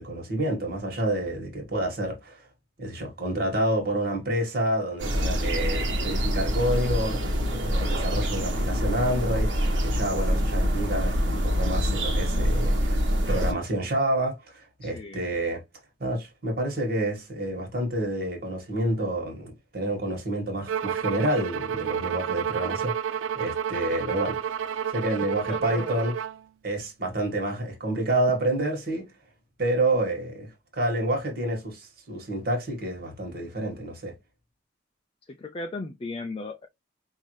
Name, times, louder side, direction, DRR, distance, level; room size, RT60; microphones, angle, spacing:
voice 1, 0.0-2.4 2.8-13.0 13.3-15.6 16.0-24.5 24.9-26.1 26.6-29.1 29.6-34.1, right 1 dB, 50° right, 1.7 m, -29 dB
sound 1, 5.0-13.5, equal, 70° right, 1.2 m, -25 dB
voice 2, 14.8-15.2 25.5-26.0 35.3-36.7, left 2 dB, 25° left, 0.4 m, -36 dB
Bowed string instrument, 20.7-26.4, right 8 dB, 90° right, 0.4 m, -30 dB
5.3 x 2.7 x 3.2 m
head